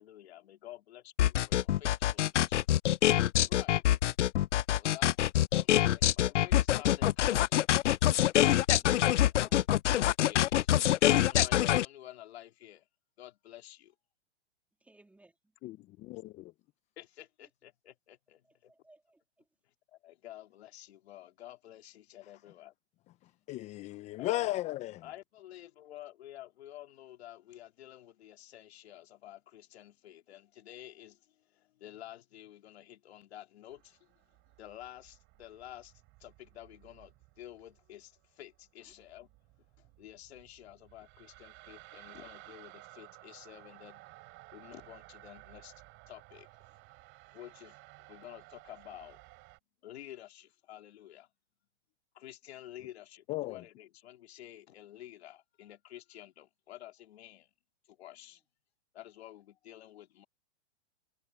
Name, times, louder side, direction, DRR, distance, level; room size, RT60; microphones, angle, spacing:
voice 1, 0.0-2.6 3.5-3.8 4.8-5.2 5.5-7.6 10.3-10.7 11.1-12.9 13.2-13.9 17.0-18.7 19.9-22.7 24.1-24.6 25.0-34.1 34.6-35.9 36.2-39.3 39.8-44.1 44.5-46.8 47.3-47.8 48.1-49.2 49.8-51.3 52.1-57.5 57.9-58.4 58.9-60.3, left 13 dB, 65° left, 2.8 m, -50 dB
sound 1, 1.2-11.8, left 12 dB, 90° left, 0.5 m, -25 dB
voice 2, 8.8-9.7 14.9-15.3 17.4-17.5 18.4-19.2 38.8-38.9, right 2 dB, 5° right, 2.7 m, -63 dB
voice 3, 16.0-16.5 23.5-25.0 53.3-53.6, left 17 dB, 20° left, 0.6 m, -35 dB
sound 2, 33.7-49.6, right 22 dB, 35° right, 3.9 m, -56 dB
hypercardioid pair, 135°, 35 cm